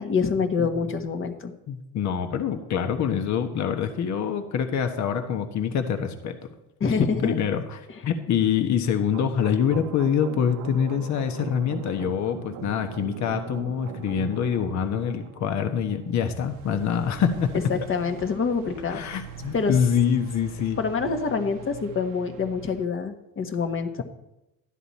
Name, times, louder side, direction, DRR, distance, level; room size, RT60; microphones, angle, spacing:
voice 1, 0.0-1.5 6.8-7.3 17.7-19.0 19.5-19.8 20.8-24.0, left 5 dB, 35° left, 6 dB, 1.5 m, -26 dB
voice 2, 0.6-0.9 1.7-6.4 6.8-17.5 18.9-20.8, left 8 dB, 50° left, 6 dB, 1.3 m, -25 dB
sound 1, 9.1-22.9, right 11 dB, 70° right, 0.8 m, -41 dB
13.0 x 9.9 x 4.2 m, 0.91 s
supercardioid pair, 95°, 35 cm